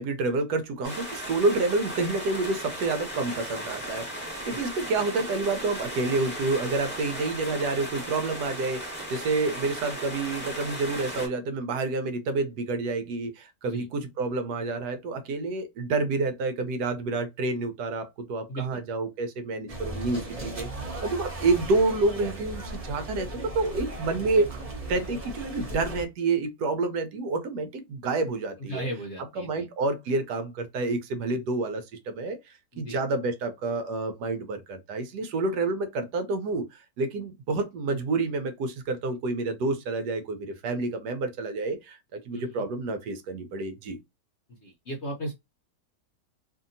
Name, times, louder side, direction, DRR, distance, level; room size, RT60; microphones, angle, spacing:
voice 1, 0.0-20.7 21.0-24.6 24.9-28.8 29.4-32.4 32.8-36.6 37.0-44.0, right 3 dB, 75° right, 1.2 m, -28 dB
sound 1, 0.8-11.3, right 1 dB, 5° left, 1.4 m, -36 dB
voice 2, 18.5-18.8 28.7-29.7 32.7-33.0 42.3-42.7 44.5-45.3, right 1 dB, 60° left, 0.7 m, -36 dB
sound 2, 19.7-26.0, right 1 dB, 35° right, 0.5 m, -37 dB
2.7 x 2.7 x 2.6 m
omnidirectional pair, 1.8 m